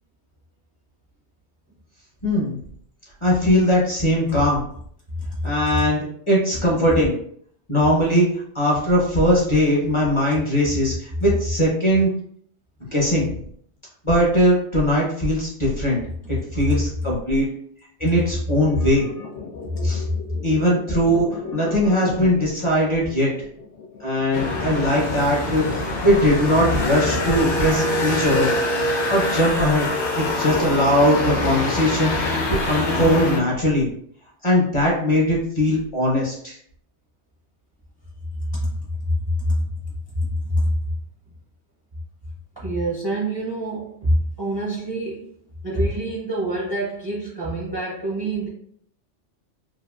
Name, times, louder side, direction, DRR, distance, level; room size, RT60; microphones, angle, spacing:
voice 1, 2.2-2.6 3.2-4.6 5.4-7.1 7.7-8.3 8.5-12.1 12.9-13.4 14.0-16.0 16.3-17.5 18.0-19.1 19.8-20.0 20.4-23.3 24.0-28.5 29.1-33.9 34.4-36.6, equal, 30° left, -4 dB, 0.6 m, -20 dB
voice 2, 5.2-5.5 16.2-16.6 19.8-20.0 38.5-39.7 40.2-40.7 42.6-45.3 45.6-48.5, equal, 35° right, -4 dB, 0.4 m, -25 dB
sound 1, 18.6-25.4, left 5 dB, 90° left, 1.1 m, -37 dB
sound 2, 24.3-33.4, left 1 dB, 65° left, 0.9 m, -24 dB
2.9 x 2.5 x 2.3 m, 0.64 s
omnidirectional pair, 1.2 m